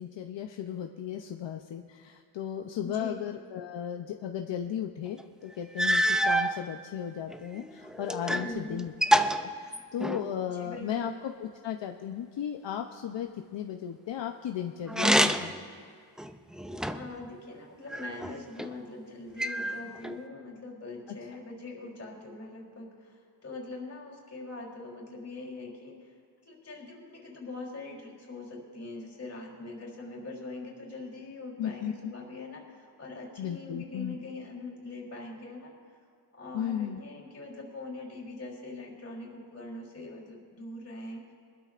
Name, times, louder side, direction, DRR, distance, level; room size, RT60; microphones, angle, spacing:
voice 1, 0.0-8.9 9.4-15.5 31.6-32.1 33.4-34.2 36.5-37.0, left 9 dB, 70° left, 4 dB, 0.7 m, -35 dB
voice 2, 2.8-3.1 8.3-8.8 10.5-11.2 16.9-26.1 26.4-36.0 36.3-41.2, left 2 dB, 35° left, -2 dB, 3.5 m, -42 dB
sound 1, 5.2-5.3 5.8-6.5 7.3-8.5 8.8-10.3 14.9-15.6 16.2-17.2 17.9-18.7 19.4-20.2, equal, ahead, 0.3 m, -27 dB
23.5 x 12.5 x 2.5 m, 2.3 s
wide cardioid pair, 115°, 45 cm